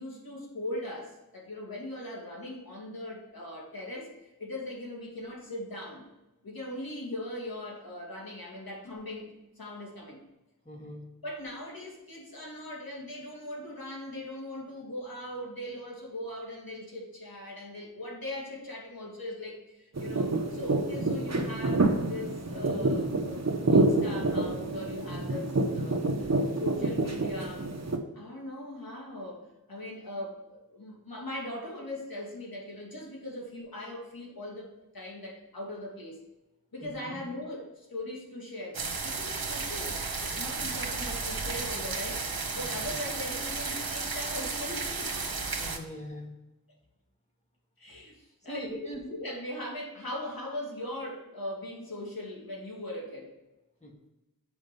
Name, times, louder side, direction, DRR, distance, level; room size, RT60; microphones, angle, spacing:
voice 1, 0.0-6.1 6.4-9.3 9.6-10.2 11.2-26.3 26.6-27.7 28.1-36.2 36.7-45.6 47.8-48.7 49.0-53.3, left 1 dB, 75° left, -2 dB, 2.5 m, -40 dB
voice 2, 10.6-11.0 26.3-26.7 36.8-37.2 42.6-42.7 45.6-46.3 48.4-49.0 53.8-53.9, equal, 20° left, -2 dB, 2.2 m, -42 dB
sound 1, 20.0-28.0, right 2 dB, 45° right, 1.0 m, -28 dB
sound 2, 38.7-45.8, right 4 dB, 90° right, 1.1 m, -33 dB
7.4 x 5.2 x 5.3 m, 1.0 s
wide cardioid pair, 70°, 36 cm